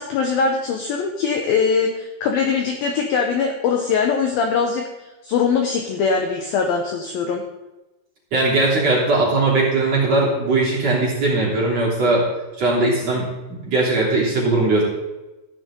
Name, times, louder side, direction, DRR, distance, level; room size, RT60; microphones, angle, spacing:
voice 1, 0.0-7.4, left 5 dB, 75° left, 3 dB, 2.2 m, -22 dB
voice 2, 8.3-12.2 12.6-13.3 13.6-14.8, right 2 dB, 35° right, -5 dB, 4.0 m, -19 dB
15.0 x 10.0 x 3.8 m, 1.1 s
omnidirectional pair, 5.3 m